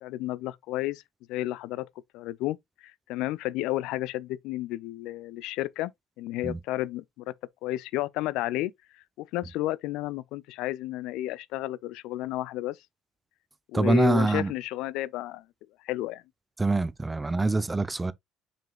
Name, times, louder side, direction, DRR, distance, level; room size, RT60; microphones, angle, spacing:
voice 1, 0.0-1.0 1.3-1.9 2.1-5.9 6.2-7.3 7.6-12.8 13.7-15.5 15.8-16.2, left 15 dB, 60° left, 0.5 m, -32 dB
voice 2, 13.7-14.5 16.6-18.1, right 2 dB, 15° right, 0.7 m, -24 dB
7.0 x 5.9 x 2.4 m
figure-of-eight pair, 55°, 0 cm